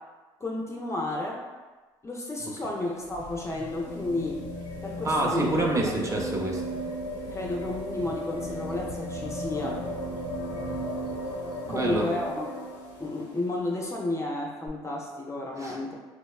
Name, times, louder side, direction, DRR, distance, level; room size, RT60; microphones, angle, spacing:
voice 1, 0.4-1.4 2.0-4.4 4.8-5.6 7.3-9.8 11.7-12.5 13.0-16.0, left 2 dB, 25° left, -1 dB, 0.4 m, -32 dB
sound 1, 2.6-13.5 14.7-14.8, equal, 75° left, 0.5 m, -36 dB
voice 2, 5.0-6.6 11.7-12.1 15.6-15.8, right 2 dB, 25° right, -1 dB, 0.5 m, -27 dB
2.9 x 2.1 x 2.3 m, 1.3 s
supercardioid pair, 65°, 12 cm